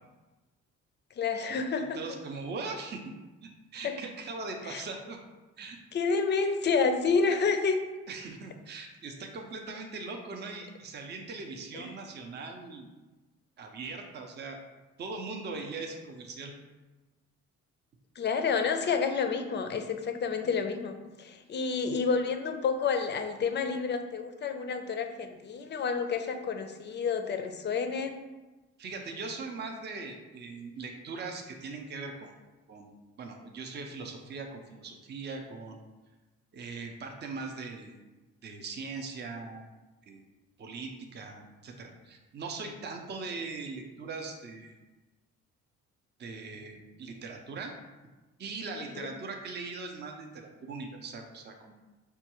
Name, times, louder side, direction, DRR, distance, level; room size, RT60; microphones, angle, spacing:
voice 1, 1.2-2.0 3.8-3.9 4.7-4.8 5.9-7.8 11.7-11.9 18.2-28.1 48.8-49.1, left 5 dB, 35° left, 7 dB, 0.4 m, -29 dB
voice 2, 1.9-3.1 3.4-5.2 5.6-5.8 8.1-12.9 13.6-14.6 15.0-16.5 28.8-32.3 32.7-35.8 36.5-38.0 38.4-39.7 40.1-40.2 40.6-44.7 46.2-47.7 48.4-51.7, right 4 dB, 35° right, 3 dB, 0.5 m, -40 dB
4.5 x 2.3 x 2.9 m, 1.2 s
cardioid pair, 90°, 30 cm